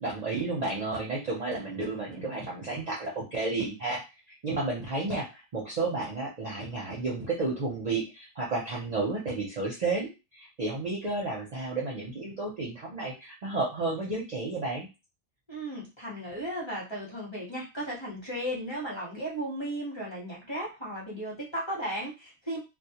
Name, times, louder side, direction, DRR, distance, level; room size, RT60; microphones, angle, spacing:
voice 1, 0.0-4.0 4.4-14.9, right 3 dB, 45° right, -4 dB, 0.5 m, -32 dB
voice 2, 15.5-22.6, right 1 dB, 25° left, -5 dB, 0.8 m, -35 dB
2.2 x 2.1 x 2.7 m, 0.27 s
omnidirectional pair, 1.2 m